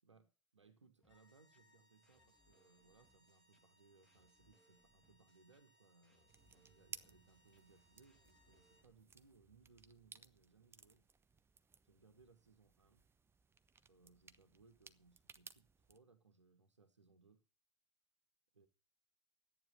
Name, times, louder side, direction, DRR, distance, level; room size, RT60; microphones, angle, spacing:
voice 1, 0.0-11.1 11.8-13.0 13.8-17.5 18.5-18.7, right 4 dB, 80° right, 1.6 m, -68 dB
sound 1, 1.0-8.9, equal, 85° left, 4.4 m, -74 dB
sound 2, 1.0-9.0, left 1 dB, 5° left, 1.6 m, -77 dB
sound 3, 6.3-16.0, right 5 dB, 15° right, 0.9 m, -60 dB
14.0 x 9.5 x 6.7 m
figure-of-eight pair, 85°, 15 cm